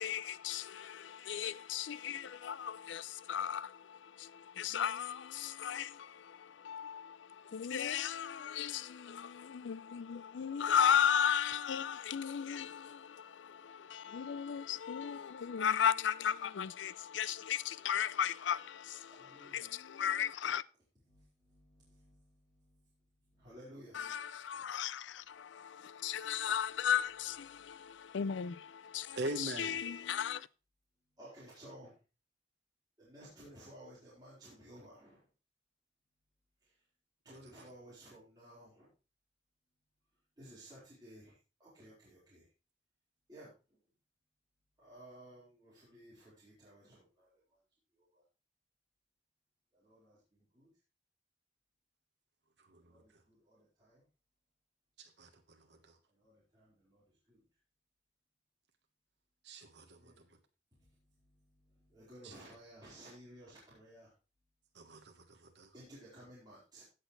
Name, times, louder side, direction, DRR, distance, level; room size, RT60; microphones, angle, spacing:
voice 1, 0.0-19.1 19.4-20.6 23.9-30.5, left 8 dB, 90° left, 0.4 m, -35 dB
voice 2, 19.1-19.7 21.1-22.9 23.2-24.0 27.5-27.7 29.9-30.2 31.2-31.9 33.0-35.3 36.6-36.8 37.2-38.9 40.4-42.5 43.3-43.5 44.8-47.6 48.0-48.2 49.7-50.7 52.9-54.0 56.1-57.4 60.0-60.2 60.7-64.1 65.7-66.8, right 1 dB, 25° right, 4.3 m, -56 dB
voice 3, 29.2-29.9 52.7-52.8 55.2-55.3 59.4-60.0 62.2-62.3 64.7-65.7, right 1 dB, 70° right, 1.3 m, -41 dB
16.5 x 6.6 x 3.2 m
head